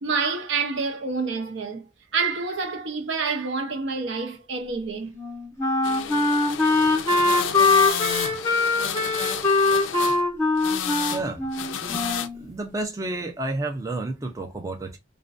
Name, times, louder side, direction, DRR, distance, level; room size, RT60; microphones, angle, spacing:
voice 1, 0.0-5.2, right 4 dB, 65° right, 0.6 m, -28 dB
Wind instrument woodwind instrument, 5.2-12.4, left 3 dB, 15° left, 0.7 m, -22 dB
sound 1, 5.8-10.2 10.6-11.3 11.5-12.3, left 8 dB, 75° left, 0.4 m, -31 dB
voice 2, 11.1-11.5 11.8-15.0, right 2 dB, 15° right, 0.4 m, -31 dB
2.4 x 2.2 x 2.4 m
head